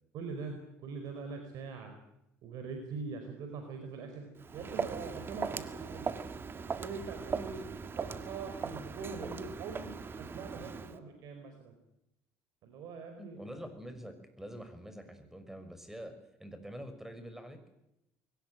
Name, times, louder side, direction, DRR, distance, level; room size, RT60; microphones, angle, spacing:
voice 1, 0.1-1.9 2.4-4.3 4.5-6.0 6.5-7.6 8.0-11.8 12.6-13.4, right 4 dB, 65° right, 5 dB, 4.8 m, -43 dB
Walk footsteps, 4.4-11.0, right 5 dB, 35° right, 1.9 m, -39 dB
voice 2, 13.2-16.1 16.4-17.6, equal, 5° right, 9 dB, 6.0 m, -46 dB
22.0 x 18.5 x 9.2 m, 0.85 s
supercardioid pair, 75°, 7 cm